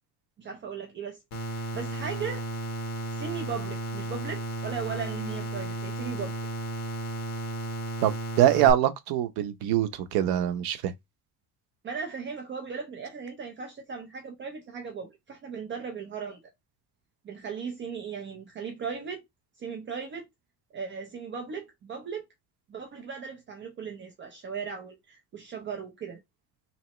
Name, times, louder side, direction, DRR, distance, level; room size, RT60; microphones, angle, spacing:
voice 1, 0.4-1.2 1.5-2.4 3.1-6.3 11.8-16.4 17.2-19.2 19.6-20.3 20.7-22.3 22.7-26.2, right 6 dB, 30° right, 0.6 m, -37 dB
sound 1, 1.3-8.7, right 2 dB, 45° left, 1.4 m, -34 dB
voice 2, 8.4-10.9, right 11 dB, 75° right, 0.7 m, -23 dB
4.0 x 3.0 x 3.0 m
cardioid pair, 165°, 37 cm